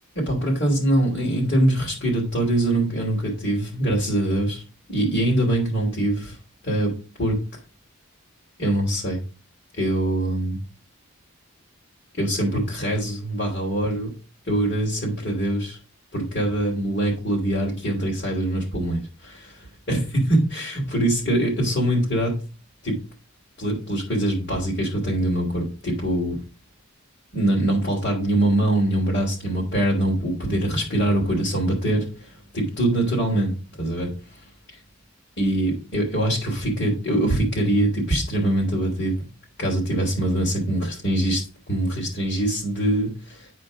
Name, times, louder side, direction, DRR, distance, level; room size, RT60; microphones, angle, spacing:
voice 1, 0.2-4.6 4.9-6.4 6.6-6.9 7.2-7.4 8.6-9.2 9.7-10.6 12.1-14.1 14.5-15.8 16.1-22.4 22.8-23.0 23.6-26.4 27.3-34.4 35.4-39.2 39.6-43.5, right 1 dB, 50° left, -4 dB, 2.8 m, -23 dB
10.5 x 4.4 x 5.0 m, 0.35 s
head